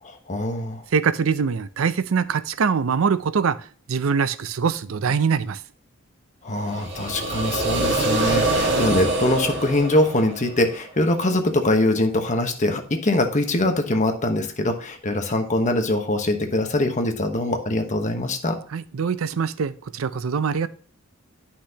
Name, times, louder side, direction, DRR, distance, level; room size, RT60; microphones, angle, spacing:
voice 1, 0.0-0.8 6.4-18.6, left 1 dB, 35° left, 1.1 m, -23 dB
voice 2, 0.9-5.6 18.7-20.7, right 6 dB, 85° right, 0.5 m, -23 dB
sound 1, 6.7-10.7, right 2 dB, 60° right, 1.6 m, -24 dB
10.0 x 5.8 x 2.9 m
head